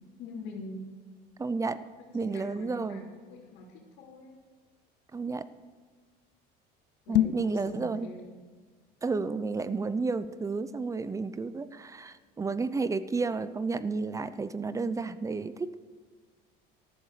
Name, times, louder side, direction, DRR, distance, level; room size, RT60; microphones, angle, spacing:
voice 1, 0.2-0.8 2.2-4.3 7.0-8.2, left 2 dB, 65° left, -5 dB, 3.2 m, -44 dB
voice 2, 1.4-1.8 2.1-3.1 5.1-5.5 7.1-8.1 9.0-15.7, right 4 dB, 15° right, 14 dB, 0.6 m, -31 dB
sound 1, 7.0-7.6, left 15 dB, 85° left, 0.6 m, -26 dB
14.0 x 13.0 x 5.0 m, 1.5 s
supercardioid pair, 120°, 20 cm